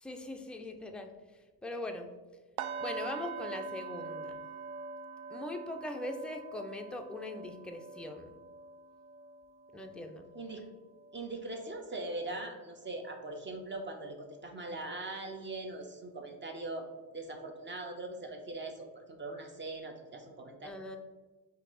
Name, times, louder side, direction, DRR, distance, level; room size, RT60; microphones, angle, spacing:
voice 1, 0.0-1.1 1.6-2.1 2.8-4.4 5.3-8.3 9.7-10.3 20.6-21.0, left 1 dB, 5° left, 3 dB, 0.3 m, -41 dB
sound 1, 2.6-12.5 12.8-13.1 13.6-13.7, right 4 dB, 70° right, 0.5 m, -44 dB
voice 2, 11.1-16.9 17.1-20.7, right 2 dB, 25° right, 3 dB, 0.8 m, -41 dB
4.6 x 2.7 x 3.8 m, 1.2 s
supercardioid pair, 85°, 42 cm